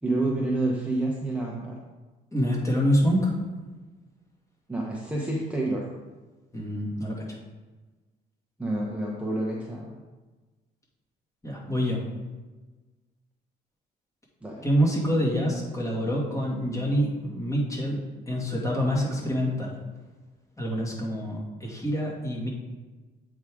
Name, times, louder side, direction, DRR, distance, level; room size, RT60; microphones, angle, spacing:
voice 1, 0.0-1.8 4.7-5.9 8.6-10.0 14.4-14.6, right 2 dB, 5° right, -3 dB, 0.9 m, -28 dB
voice 2, 2.3-3.4 6.5-7.4 11.4-12.0 14.6-18.0 18.3-19.8 20.6-22.5, equal, 20° left, -3 dB, 2.1 m, -26 dB
8.0 x 3.7 x 4.8 m, 1.3 s
cardioid pair, 110°, 17 cm